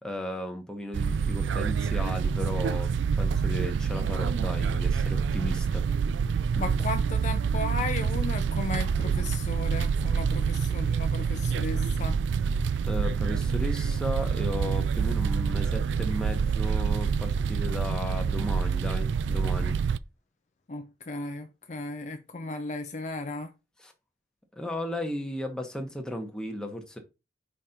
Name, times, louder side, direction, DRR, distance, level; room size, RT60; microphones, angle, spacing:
voice 1, 0.0-5.9 12.9-19.8 23.8-23.9 24.6-27.0, left 1 dB, 5° left, 1.1 m, -35 dB
sound 1, 0.9-20.0, right 6 dB, 85° right, 0.3 m, -27 dB
voice 2, 6.6-12.2 20.7-23.5, left 2 dB, 40° left, 0.5 m, -35 dB
5.1 x 4.4 x 5.1 m
head